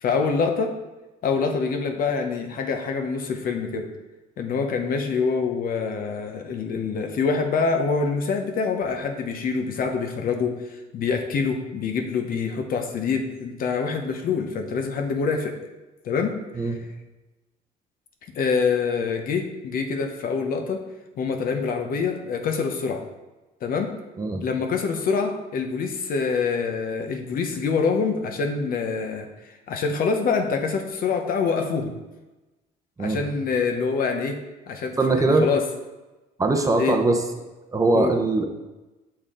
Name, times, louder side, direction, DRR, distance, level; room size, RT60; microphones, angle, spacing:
voice 1, 0.0-0.7 1.2-3.9 4.4-15.5 16.0-16.4 18.3-20.8 21.2-23.0 23.6-24.0 24.4-32.0 33.0-34.4 34.7-35.6 36.7-37.0 37.9-38.1, left 5 dB, 60° left, 4 dB, 0.9 m, -25 dB
voice 2, 35.0-35.5 36.4-37.2 37.7-38.5, right 2 dB, 20° right, 3 dB, 0.7 m, -21 dB
6.7 x 4.5 x 3.7 m, 1.1 s
cardioid pair, 110°, 17 cm